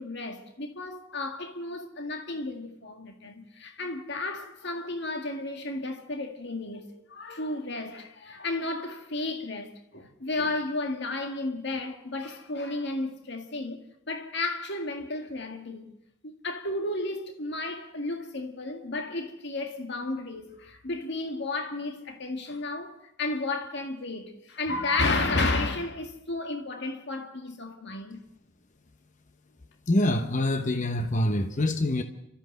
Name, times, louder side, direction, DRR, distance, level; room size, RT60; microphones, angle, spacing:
voice 1, 0.0-13.8 14.1-15.9 16.2-28.2, left 2 dB, 55° left, 1.9 m, -32 dB
voice 2, 29.9-32.0, left 1 dB, 35° left, 1.0 m, -25 dB
29.5 x 13.5 x 7.9 m
head